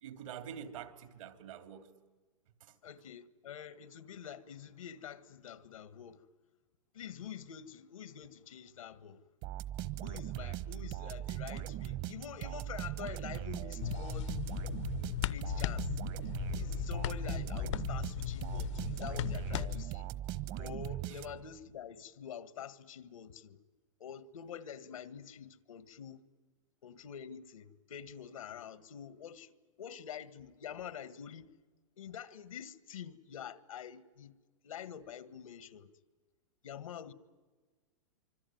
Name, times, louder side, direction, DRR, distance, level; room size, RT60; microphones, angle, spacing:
voice 1, 0.0-1.9 2.6-2.7 21.0-21.2, right 8 dB, 75° right, 3.2 m, -46 dB
voice 2, 2.8-6.2 6.9-9.2 10.0-14.3 15.2-15.9 16.5-20.1 20.6-23.6 24.0-26.2 26.8-29.5 29.8-31.5 32.0-34.3 34.6-35.9 36.6-37.1, left 8 dB, 90° left, 1.7 m, -47 dB
sound 1, 9.4-21.6, right 13 dB, 45° right, 1.2 m, -40 dB
sound 2, 13.8-19.8, left 14 dB, 65° left, 0.8 m, -37 dB
25.5 x 25.0 x 9.4 m
hypercardioid pair, 135°, 17 cm